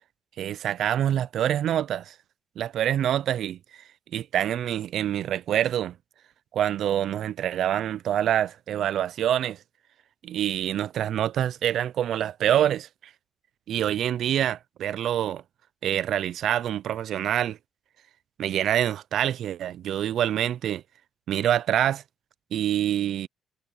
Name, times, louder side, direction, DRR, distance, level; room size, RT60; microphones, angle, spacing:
voice 1, 0.4-2.1 2.6-3.6 4.1-5.9 6.5-9.6 10.2-12.9 13.7-15.4 15.8-17.6 18.4-20.8 21.3-22.0 22.5-23.3, right 11 dB, 70° right, 0.4 m, -26 dB
cardioid pair, 90°, 0 cm